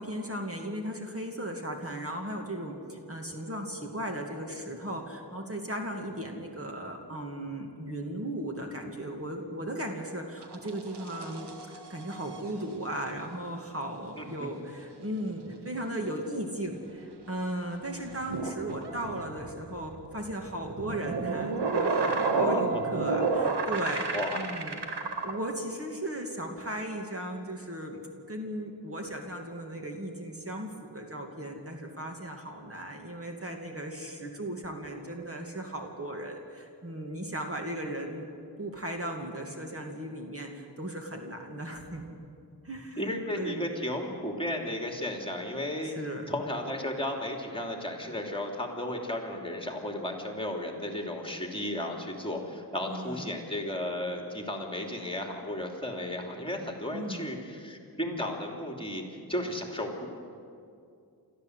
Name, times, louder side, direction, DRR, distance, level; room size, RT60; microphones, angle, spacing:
voice 1, 0.0-28.0 28.3-38.3 38.6-42.2 42.6-43.8 45.8-46.2 52.9-53.3 56.9-57.3, right 1 dB, 35° right, 2 dB, 2.4 m, -37 dB
sound 1, 10.4-12.6 16.9-17.0 18.1-25.4, right 4 dB, 80° right, 1.8 m, -31 dB
voice 2, 22.3-22.8 24.1-24.4 43.0-45.9 46.3-60.1, left 1 dB, 15° left, 2 dB, 3.0 m, -34 dB
28.5 x 13.5 x 8.1 m, 2.4 s
wide cardioid pair, 80°, 40 cm